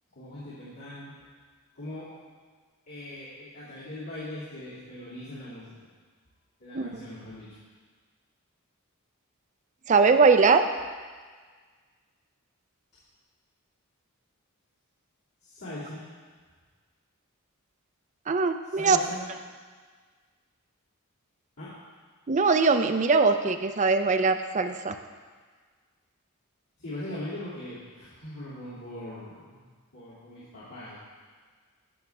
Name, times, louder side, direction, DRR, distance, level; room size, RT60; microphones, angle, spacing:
voice 1, 0.1-1.1 1.7-2.2 2.9-5.7 6.6-7.6 15.4-16.0 18.7-19.3 21.6-21.8 26.8-29.6 29.9-31.0, left 1 dB, 85° left, -13 dB, 2.9 m, -40 dB
voice 2, 9.9-10.7 18.3-19.0 22.3-25.0, right 4 dB, 35° right, 8 dB, 0.4 m, -21 dB
15.5 x 6.0 x 3.5 m, 1.5 s
head